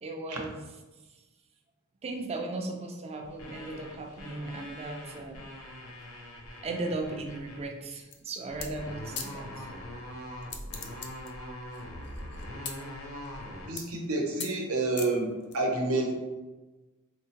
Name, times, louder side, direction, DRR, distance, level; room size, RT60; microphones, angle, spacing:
voice 1, 0.0-0.6 2.0-5.4 6.6-9.5, right 2 dB, 30° right, 3 dB, 0.4 m, -36 dB
sound 1, 3.2-7.6 8.5-13.7, left 1 dB, 85° left, 0.7 m, -42 dB
sound 2, 8.1-8.3 8.6-8.7 9.2-9.3 10.4-11.3 11.7-12.7 13.3-13.4 13.8-14.1 14.4-14.5 15.0-15.5, left 7 dB, 55° left, 0.4 m, -38 dB
voice 2, 13.6-16.1, right 2 dB, 80° right, 1 dB, 0.7 m, -29 dB
4.5 x 2.1 x 2.8 m, 1.1 s
head